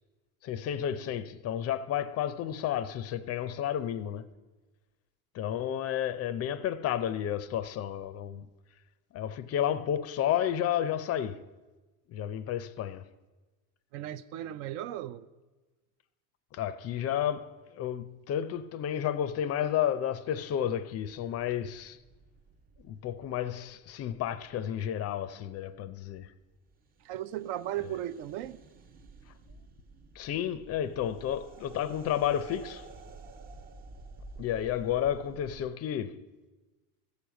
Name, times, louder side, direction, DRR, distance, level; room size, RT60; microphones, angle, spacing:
voice 1, 0.4-4.3 5.3-8.5 9.1-11.5 12.1-13.1 16.5-22.0 22.8-26.3 30.2-32.9 34.4-36.2, left 10 dB, 35° left, 0.4 m, -31 dB
voice 2, 13.9-15.3 27.0-28.6, right 12 dB, 65° right, 0.6 m, -36 dB
sound 1, 21.0-35.7, right 3 dB, 20° right, 0.4 m, -52 dB
14.0 x 4.9 x 8.0 m
supercardioid pair, 130°, 44 cm